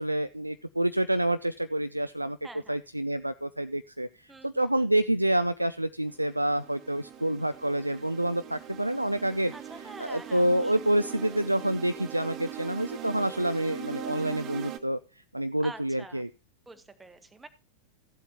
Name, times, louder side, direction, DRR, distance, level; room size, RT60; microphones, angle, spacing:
voice 1, 0.0-2.4 2.7-4.1 4.4-9.5 10.0-15.0 15.3-16.3, right 1 dB, 85° right, 10 dB, 0.4 m, -28 dB
voice 2, 2.4-2.8 4.3-4.9 9.5-10.8 15.6-16.2 16.7-17.5, right 2 dB, 10° right, 9 dB, 1.4 m, -47 dB
sound 1, 6.1-14.8, right 9 dB, 30° right, 1.4 m, -41 dB
15.0 x 8.1 x 2.8 m, 0.32 s
figure-of-eight pair, 90°, 0 cm